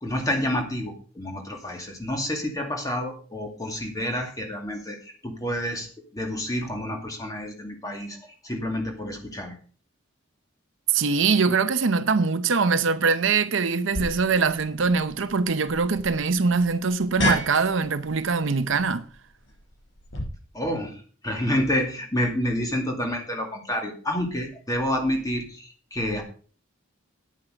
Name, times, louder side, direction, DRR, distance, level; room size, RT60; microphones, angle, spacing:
voice 1, 0.0-9.6 20.5-26.2, left 1 dB, 15° left, 2.3 m, -29 dB
voice 2, 10.9-19.0, right 4 dB, 65° right, 0.7 m, -23 dB
sound 1, 13.9-20.2, left 1 dB, 60° left, 5.0 m, -33 dB
9.6 x 9.0 x 5.1 m
head